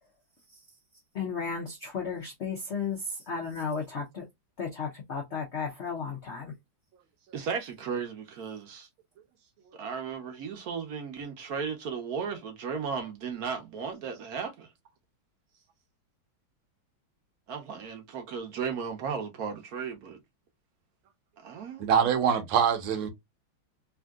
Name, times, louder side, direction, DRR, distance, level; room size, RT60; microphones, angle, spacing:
voice 1, 1.1-4.2 4.6-6.5, left 5 dB, 80° left, 0.6 m, -34 dB
voice 2, 7.3-8.9 9.7-14.7 17.5-20.2 21.4-22.1, right 6 dB, 60° right, 1.1 m, -35 dB
voice 3, 21.8-23.1, right 7 dB, 85° right, 1.6 m, -24 dB
3.5 x 2.6 x 2.3 m
omnidirectional pair, 2.2 m